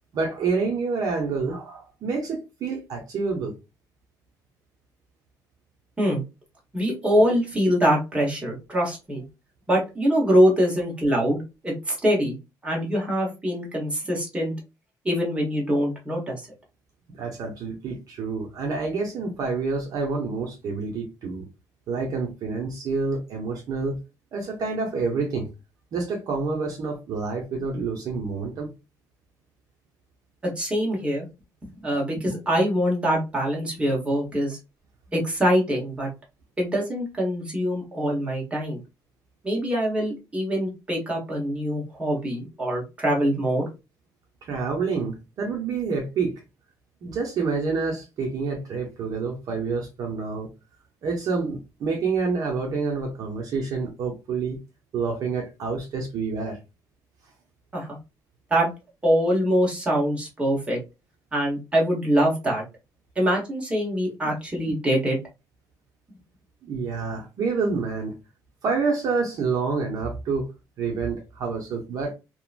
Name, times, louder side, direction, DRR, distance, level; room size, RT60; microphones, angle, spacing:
voice 1, 0.1-3.5 17.1-21.5 21.9-24.0 24.3-25.5 25.9-28.7 44.4-46.4 47.0-50.5 51.0-54.6 54.9-56.6 66.6-68.1 68.6-70.5 70.8-72.1, right 4 dB, 55° right, 0.7 m, -28 dB
voice 2, 6.7-9.2 9.7-12.4 12.6-14.5 15.0-16.4 30.6-31.2 31.8-34.6 35.1-36.1 36.6-38.8 39.4-43.7 57.7-57.9 58.5-58.7 59.0-60.8 61.3-62.6 63.2-65.2, equal, 15° right, 1.2 m, -24 dB
2.8 x 2.2 x 2.4 m
cardioid pair, 125°, 7 cm